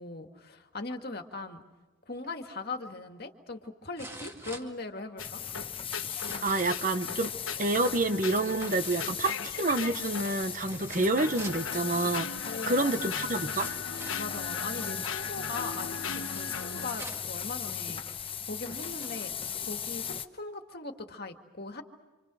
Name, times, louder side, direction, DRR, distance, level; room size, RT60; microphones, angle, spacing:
voice 1, 0.0-1.6 2.1-5.4 12.4-13.2 14.2-19.3 19.7-21.8, left 3 dB, 50° left, 5 dB, 2.1 m, -40 dB
sound 1, 2.6-2.7 4.0-5.3 6.0-6.9 8.2-9.4 10.6-11.7 12.7-12.8 13.3-14.3 16.2-17.4 18.2-18.3 18.7-19.3 19.9-20.0, right 1 dB, 15° right, 2.1 m, -46 dB
sound 2, 5.2-10.4 11.0-17.0, left 6 dB, 80° left, 1.2 m, -39 dB
sound 3, 5.2-20.3, left 8 dB, 25° left, 1.0 m, -37 dB
voice 2, 6.4-7.3 7.6-13.7, right 2 dB, 40° right, 10 dB, 1.0 m, -28 dB
28.5 x 27.0 x 6.3 m, 1.2 s
head